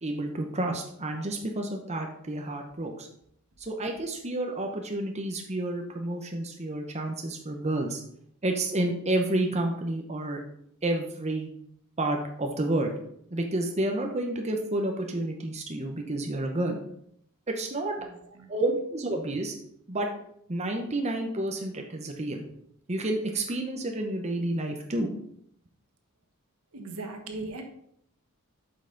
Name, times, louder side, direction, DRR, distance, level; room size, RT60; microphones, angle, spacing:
voice 1, 0.0-3.1 3.6-8.0 8.4-10.4 10.8-11.5 12.0-12.9 13.3-16.8 17.5-18.0 18.5-19.5 19.9-20.1 20.5-22.4 22.9-25.1, right 1 dB, 30° right, 3 dB, 0.8 m, -30 dB
voice 2, 17.9-18.5 26.7-27.6, right 2 dB, 80° right, 5 dB, 1.3 m, -39 dB
8.0 x 5.5 x 3.9 m, 0.70 s
head